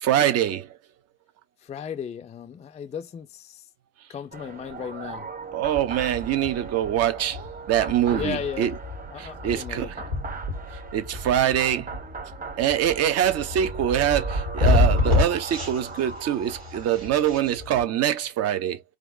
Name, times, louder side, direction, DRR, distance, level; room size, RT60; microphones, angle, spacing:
voice 1, 0.0-0.7 5.5-8.7 9.2-10.0 10.9-12.0 12.6-18.8, right 11 dB, 55° right, 0.9 m, -24 dB
voice 2, 1.6-3.7 4.1-5.3 8.1-8.7 9.1-9.9, left 8 dB, 20° left, 0.4 m, -35 dB
sound 1, 4.3-17.2, right 4 dB, 30° right, 1.1 m, -39 dB
sound 2, 5.6-17.8, left 2 dB, 90° right, 2.0 m, -29 dB
4.8 x 2.5 x 2.6 m
figure-of-eight pair, 50°, 30 cm